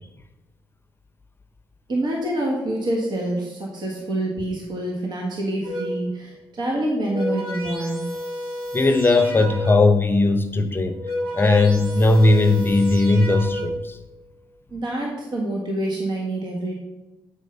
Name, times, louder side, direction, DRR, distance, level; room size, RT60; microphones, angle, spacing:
voice 1, 1.9-8.1 14.7-16.8, right 1 dB, 55° right, -1 dB, 1.7 m, -26 dB
sound 1, 5.6-6.1 6.9-10.0 10.8-13.9, equal, 85° right, 1.8 m, -31 dB
voice 2, 8.7-11.0 11.3-14.0, left 2 dB, 25° left, 8 dB, 0.7 m, -18 dB
8.4 x 4.6 x 5.5 m, 1.0 s
cardioid pair, 70°, 9 cm